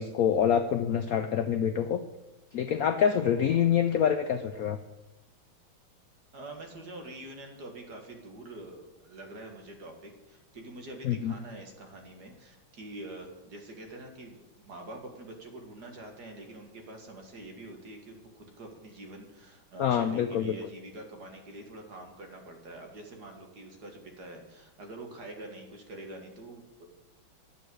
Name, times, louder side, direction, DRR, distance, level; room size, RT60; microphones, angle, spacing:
voice 1, 0.0-2.0 2.5-4.8 11.0-11.3 19.8-20.6, left 8 dB, 85° left, 9 dB, 0.7 m, -26 dB
voice 2, 6.3-26.8, right 1 dB, 50° right, 3 dB, 2.3 m, -45 dB
10.5 x 8.3 x 7.7 m, 1.0 s
omnidirectional pair, 2.2 m